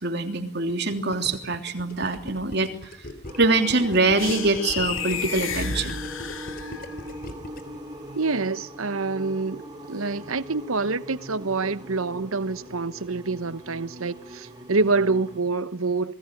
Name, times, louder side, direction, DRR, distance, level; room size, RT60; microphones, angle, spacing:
voice 1, 0.0-3.1 3.4-6.0, right 3 dB, 50° right, 3.2 m, -24 dB
Gurgling, 0.7-7.8, left 1 dB, 45° left, 3.3 m, -40 dB
sound 1, 3.2-15.4, equal, 20° right, 3.0 m, -41 dB
sound 2, 4.2-7.1, left 6 dB, 70° left, 2.7 m, -32 dB
voice 2, 8.1-16.1, right 3 dB, 80° right, 1.1 m, -26 dB
27.5 x 21.0 x 9.3 m
head